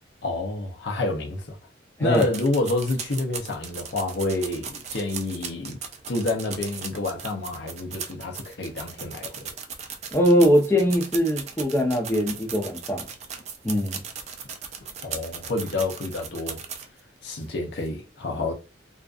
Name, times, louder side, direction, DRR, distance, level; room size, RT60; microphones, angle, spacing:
voice 1, 0.2-1.6 2.0-5.8 6.1-9.5 15.0-16.6 17.2-18.5, left 2 dB, 65° left, 0.6 m, -28 dB
sound 1, 2.1-17.0 17.4-17.5 17.8-17.9, right 6 dB, 35° right, 0.4 m, -37 dB
voice 2, 10.1-13.1 13.6-14.0, equal, 10° left, 0.6 m, -21 dB
2.4 x 2.3 x 2.4 m
head